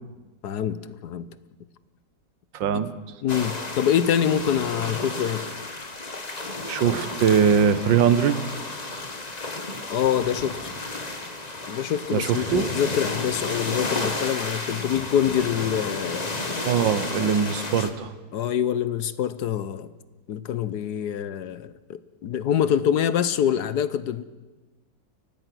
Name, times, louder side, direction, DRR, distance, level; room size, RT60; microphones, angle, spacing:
voice 1, 0.4-1.4 3.2-5.5 9.9-10.7 11.7-16.3 17.2-17.3 17.8-17.9 18.3-19.9 20.3-24.2, left 9 dB, 65° left, 1.3 m, -25 dB
voice 2, 2.5-2.9 6.7-8.4 8.9-9.0 12.1-12.6 16.7-18.1, right 7 dB, 80° right, 1.8 m, -21 dB
sound 1, 3.3-17.9, left 2 dB, 25° left, 1.5 m, -32 dB
29.5 x 16.0 x 6.2 m
omnidirectional pair, 2.0 m